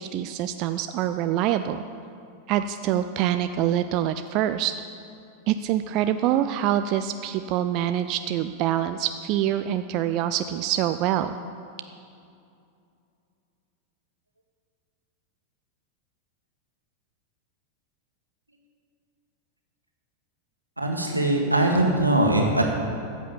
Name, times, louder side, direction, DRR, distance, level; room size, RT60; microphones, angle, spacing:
voice 1, 0.0-1.8 2.5-4.7 5.5-11.4, right 11 dB, 40° right, 10 dB, 0.4 m, -25 dB
voice 2, 20.8-22.6, right 1 dB, 85° right, 2 dB, 1.8 m, -21 dB
14.0 x 8.4 x 7.2 m, 2.5 s
figure-of-eight pair, 90°, 0 cm